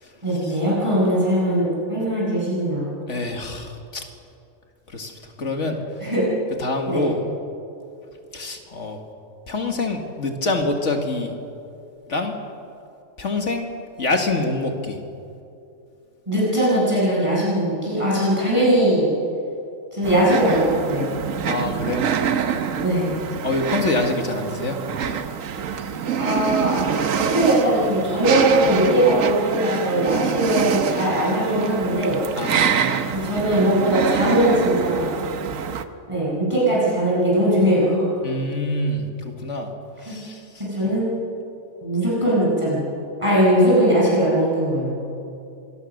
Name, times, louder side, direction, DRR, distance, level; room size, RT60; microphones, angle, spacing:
voice 1, 0.2-2.9 6.0-6.2 6.9-7.0 16.3-19.1 19.9-21.1 22.8-23.1 26.2-26.8 27.3-32.2 33.1-35.2 36.1-38.0 40.1-40.2 40.6-41.2 41.8-42.8 43.2-45.0, right 1 dB, 20° right, -7 dB, 8.2 m, -20 dB
voice 2, 3.1-4.0 4.9-5.8 6.6-7.2 8.3-9.0 9.5-11.3 12.1-12.3 13.2-13.7 14.0-15.0 21.5-22.0 23.4-24.8 32.4-33.1 38.2-39.7 40.0-40.9, left 2 dB, 55° left, 4 dB, 2.2 m, -26 dB
sound 1, 20.0-35.8, right 7 dB, 70° right, 1.3 m, -25 dB
26.0 x 20.0 x 6.6 m, 2.6 s
omnidirectional pair, 1.5 m